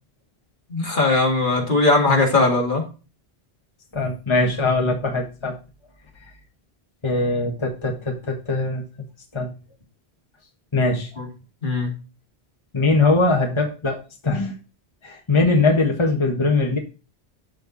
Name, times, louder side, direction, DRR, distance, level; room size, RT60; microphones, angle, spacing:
voice 1, 0.7-2.8 11.2-11.3 11.6-11.9, left 2 dB, 50° left, 1 dB, 2.5 m, -19 dB
voice 2, 3.9-5.6 7.0-8.8 9.3-9.5 10.7-11.1 12.7-14.5 15.0-16.8, left 3 dB, 25° left, 2 dB, 1.5 m, -21 dB
13.0 x 4.6 x 4.0 m, 0.33 s
omnidirectional pair, 1.1 m